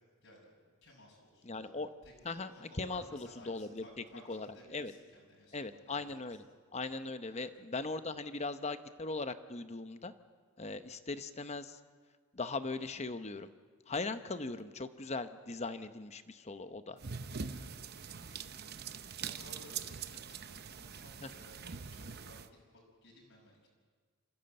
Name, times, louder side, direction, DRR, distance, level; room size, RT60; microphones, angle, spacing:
voice 1, 0.8-1.8 2.0-6.0 7.3-7.5 17.5-17.7 18.1-18.8 19.2-23.7, left 1 dB, 60° left, -3 dB, 5.9 m, -57 dB
voice 2, 1.4-1.9 2.2-3.9 4.3-4.9 5.5-6.4 6.7-10.1 10.6-11.8 12.3-13.5 13.9-17.0 21.2-21.3, left 3 dB, 30° left, 11 dB, 0.8 m, -39 dB
sound 1, 17.0-22.5, right 6 dB, 45° right, 0.8 m, -43 dB
26.5 x 15.0 x 7.8 m, 1.5 s
head